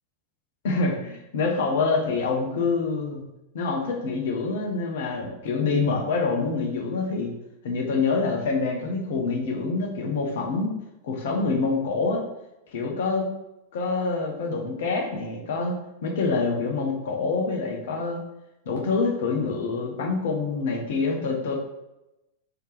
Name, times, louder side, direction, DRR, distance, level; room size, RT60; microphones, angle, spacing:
voice 1, 0.6-3.2 3.5-7.3 7.6-10.7 11.0-12.2 12.7-13.3 13.7-18.2 18.7-21.5, left 4 dB, 55° left, 2 dB, 0.7 m, -26 dB
3.3 x 2.8 x 3.2 m, 0.92 s
figure-of-eight pair, 90°, 0 cm